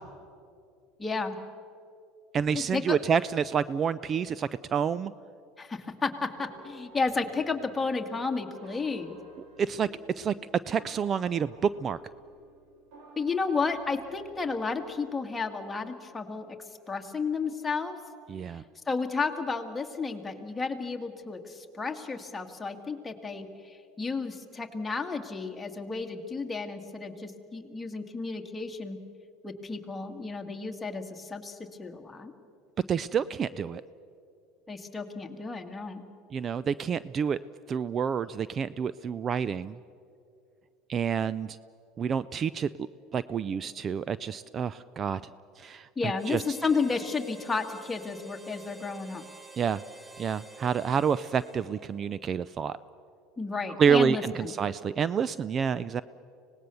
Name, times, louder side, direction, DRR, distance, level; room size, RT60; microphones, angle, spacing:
voice 1, 1.0-1.4 2.5-3.0 5.6-9.2 13.2-16.6 16.9-18.0 18.9-29.0 29.4-32.3 34.7-36.1 46.0-49.2 53.4-54.5, left 4 dB, 15° left, 3 dB, 1.9 m, -32 dB
voice 2, 2.3-5.1 9.6-9.9 10.2-10.3 10.7-12.0 18.3-18.6 32.9-33.8 36.3-37.4 37.7-39.8 40.9-41.6 42.0-42.7 43.1-45.2 45.6-46.4 49.6-49.8 50.2-52.8 53.8-56.0, right 7 dB, 35° right, 17 dB, 0.4 m, -28 dB
sound 1, 6.4-15.1, right 1 dB, 75° right, 4.0 m, -53 dB
Harmonica, 46.1-52.1, right 3 dB, 10° right, 1.0 m, -49 dB
25.0 x 18.5 x 6.9 m, 2.5 s
supercardioid pair, 110°, 0 cm